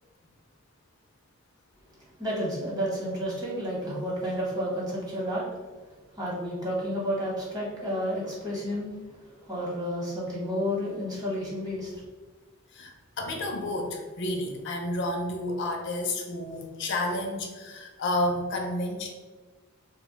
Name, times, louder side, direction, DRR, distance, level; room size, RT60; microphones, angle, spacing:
voice 1, 2.2-5.4 6.1-9.1 9.4-11.9, equal, 20° right, -5 dB, 0.9 m, -31 dB
voice 2, 12.7-19.1, left 1 dB, 60° left, 2 dB, 0.4 m, -31 dB
2.4 x 2.1 x 3.8 m, 1.3 s
head